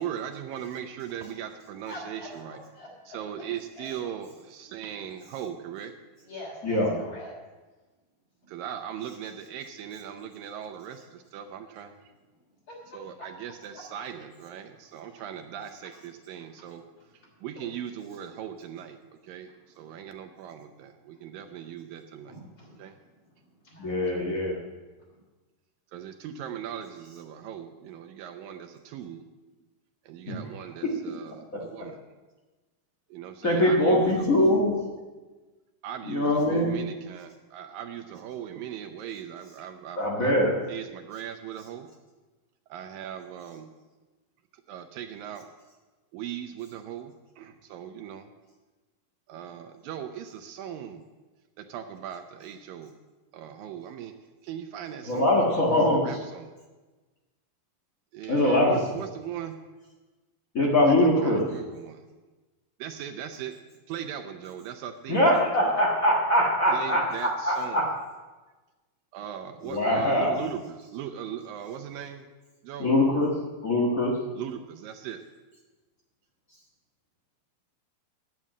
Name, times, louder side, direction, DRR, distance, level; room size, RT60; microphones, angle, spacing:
voice 1, 0.0-2.6 3.1-6.0 6.2-6.3 8.5-11.9 12.9-16.9 17.1-19.0 19.2-22.4 22.8-23.0 25.9-29.3 30.1-31.4 31.7-32.0 33.1-34.1 34.4-34.5 35.8-40.4 40.7-41.9 42.7-43.7 44.5-45.5 46.1-48.3 49.3-51.0 51.6-52.9 53.3-54.1 54.4-55.5 56.0-56.6 58.1-59.5 61.2-62.0 62.8-63.6 63.9-65.4 66.7-67.8 69.1-72.3 72.6-72.9 74.4-75.2, right 9 dB, 75° right, 7 dB, 2.3 m, -39 dB
voice 2, 1.9-3.2 3.8-3.9 6.3-7.3 12.7-13.3 13.7-13.8 15.1-15.2 17.0-17.1 17.6-17.7 19.5-19.6 19.9-20.1 21.1-21.2 22.2-24.1 25.1-25.2, left 1 dB, 35° left, -2 dB, 3.8 m, -45 dB
voice 3, 23.8-24.6 30.3-31.0 31.5-31.9 33.4-34.8 36.0-36.8 40.0-40.5 55.0-56.2 58.3-59.0 60.5-61.6 65.1-67.9 69.6-70.4 72.8-73.3 73.6-74.1 76.5-76.6, left 1 dB, 80° left, -3 dB, 0.7 m, -23 dB
9.7 x 9.0 x 7.4 m, 1.2 s
omnidirectional pair, 4.3 m